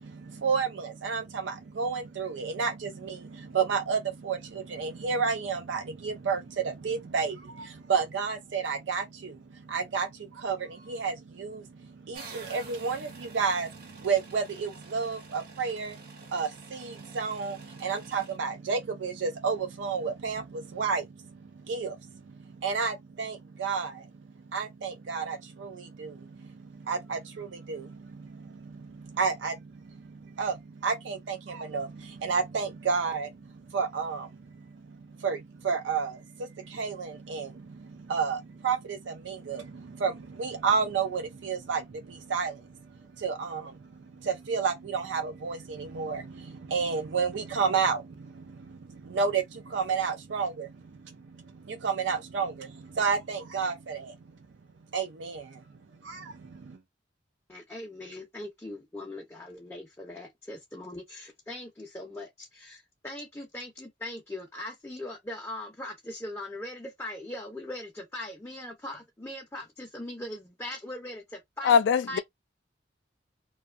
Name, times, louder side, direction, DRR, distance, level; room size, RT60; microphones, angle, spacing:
voice 1, 0.0-24.1 24.5-54.4 54.9-55.6 56.0-56.8, right 5 dB, 80° right, 0.4 m, -31 dB
sound 1, 12.1-18.4, right 4 dB, 55° right, 0.9 m, -49 dB
voice 2, 57.5-71.8 72.1-72.2, left 1 dB, 15° left, 0.5 m, -40 dB
voice 3, 71.6-72.2, left 7 dB, 75° left, 0.3 m, -21 dB
2.5 x 2.3 x 2.3 m
head